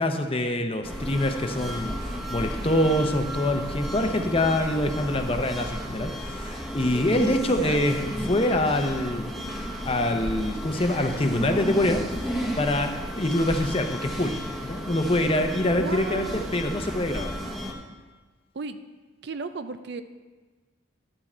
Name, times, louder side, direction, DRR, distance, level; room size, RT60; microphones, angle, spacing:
voice 1, 0.0-2.0 2.3-12.0 12.6-14.4 14.6-17.3, left 1 dB, 30° left, 6 dB, 0.7 m, -25 dB
sound 1, 0.8-17.7, equal, ahead, 1.0 m, -33 dB
voice 2, 7.1-7.8 15.8-16.6 18.5-18.8 19.2-20.0, right 4 dB, 55° right, 10 dB, 0.4 m, -34 dB
11.0 x 7.3 x 4.4 m, 1.3 s
head